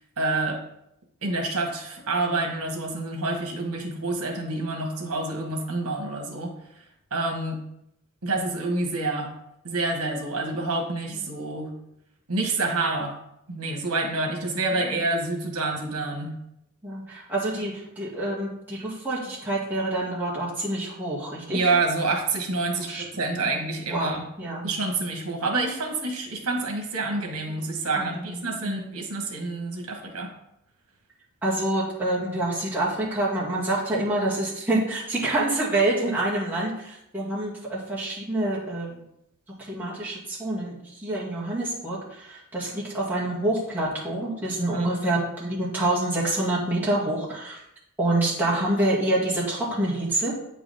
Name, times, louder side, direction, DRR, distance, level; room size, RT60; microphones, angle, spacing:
voice 1, 0.2-0.6 1.2-6.5 7.1-7.6 8.2-9.3 9.6-11.7 12.3-13.2 13.5-16.3 21.5-24.3 24.6-30.3 44.7-44.9, right 3 dB, 80° right, 2 dB, 1.4 m, -28 dB
voice 2, 16.8-21.6 22.9-23.0 23.4-23.6 23.9-24.7 27.5-27.6 27.9-28.8 31.4-39.0 39.7-47.6 48.0-50.3, right 1 dB, 10° right, -7 dB, 2.2 m, -27 dB
8.6 x 4.9 x 3.6 m, 0.79 s
head